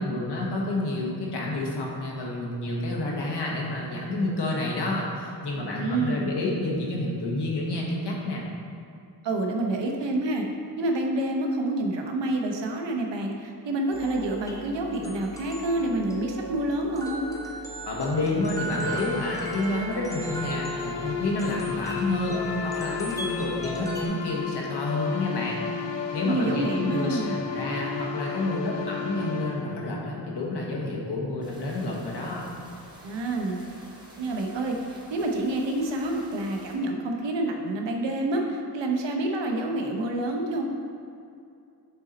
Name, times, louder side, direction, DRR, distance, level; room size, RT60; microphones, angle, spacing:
voice 1, 0.0-8.4 17.8-25.6 26.1-32.5, left 2 dB, 70° left, -3 dB, 1.3 m, -29 dB
voice 2, 5.8-6.3 9.2-10.4 10.8-17.3 26.2-27.4 33.0-33.6 34.2-40.6, right 2 dB, 90° right, 2 dB, 0.9 m, -28 dB
sound 1, 13.9-24.1, right 2 dB, 10° left, 0.7 m, -38 dB
sound 2, 18.8-30.6, left 6 dB, 90° left, 0.7 m, -33 dB
sound 3, 31.4-36.7, right 1 dB, 10° right, 1.1 m, -50 dB
7.1 x 3.9 x 4.1 m, 2.5 s
wide cardioid pair, 95°, 42 cm